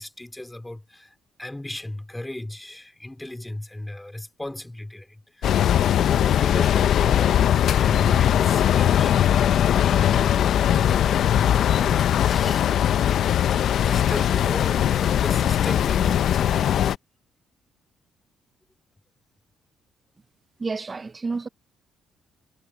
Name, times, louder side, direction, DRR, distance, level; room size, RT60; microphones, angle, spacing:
voice 1, 0.0-7.4 7.8-12.7 13.5-16.6, left 1 dB, 10° left, 3.6 m, -36 dB
sound 1, 5.4-17.0, left 10 dB, 60° left, 0.5 m, -20 dB
voice 2, 20.6-21.5, right 4 dB, 25° right, 0.5 m, -30 dB
cardioid pair, 140°, 0 cm